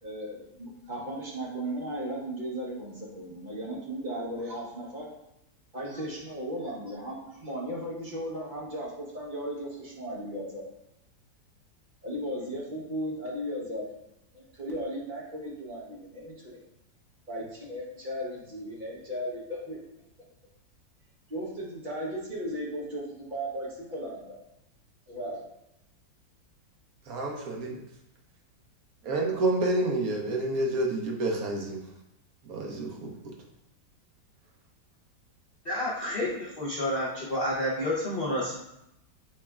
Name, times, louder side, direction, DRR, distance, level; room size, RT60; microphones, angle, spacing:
voice 1, 0.0-5.1 5.7-10.6 12.0-13.9 14.3-16.6 17.3-19.8 21.3-24.4 25.1-25.4, equal, 40° right, -4 dB, 0.7 m, -36 dB
voice 2, 27.1-27.8 29.0-31.8 32.5-33.1, right 2 dB, 60° right, 0 dB, 1.0 m, -29 dB
voice 3, 35.6-38.5, left 1 dB, 50° left, -6 dB, 0.6 m, -29 dB
6.1 x 3.4 x 2.3 m, 0.84 s
omnidirectional pair, 2.0 m